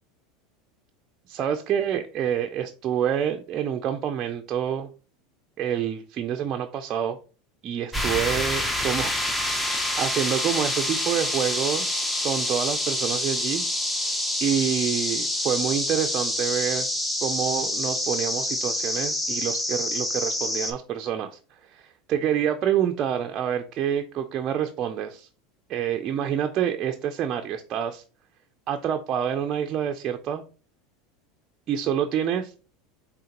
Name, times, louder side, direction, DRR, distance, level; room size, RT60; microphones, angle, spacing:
voice 1, 1.3-4.9 5.6-7.2 7.6-9.2 9.5-12.0 12.2-13.6 13.9-16.9 17.2-25.3 25.7-28.0 28.7-30.4 31.7-32.6, right 9 dB, 40° right, 5 dB, 0.4 m, -27 dB
sound 1, 7.9-20.7, left 1 dB, 10° left, 0.7 m, -27 dB
4.8 x 3.5 x 2.9 m, 0.36 s
supercardioid pair, 115°, 0 cm